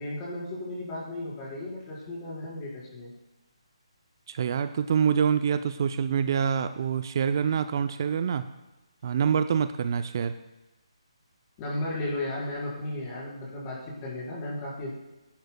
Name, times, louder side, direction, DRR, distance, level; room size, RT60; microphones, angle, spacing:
voice 1, 0.0-3.1 11.6-14.9, left 1 dB, 20° left, -6 dB, 4.3 m, -34 dB
voice 2, 4.3-8.4 9.0-10.4, right 7 dB, 45° right, 11 dB, 0.4 m, -26 dB
17.0 x 11.5 x 2.2 m, 1.0 s
figure-of-eight pair, 155°, 3 cm